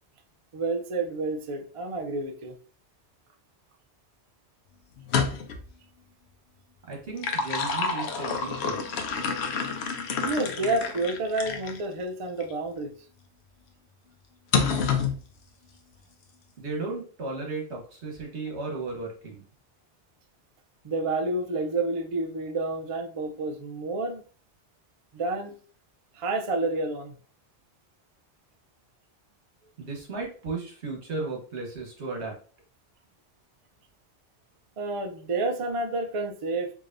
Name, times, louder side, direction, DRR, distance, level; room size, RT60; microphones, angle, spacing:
voice 1, 0.5-2.5 10.2-12.9 20.8-24.2 25.1-25.5 26.1-27.1 34.8-36.7, right 2 dB, 45° right, 5 dB, 0.4 m, -29 dB
sound 1, 5.0-5.7 6.9-11.8 12.4-12.5 14.5-15.2, left 5 dB, 70° left, 0.9 m, -28 dB
voice 2, 6.9-9.1 16.6-19.4 29.8-32.4, right 3 dB, 70° right, 0 dB, 1.4 m, -35 dB
4.8 x 2.7 x 2.5 m, 0.41 s
omnidirectional pair, 1.2 m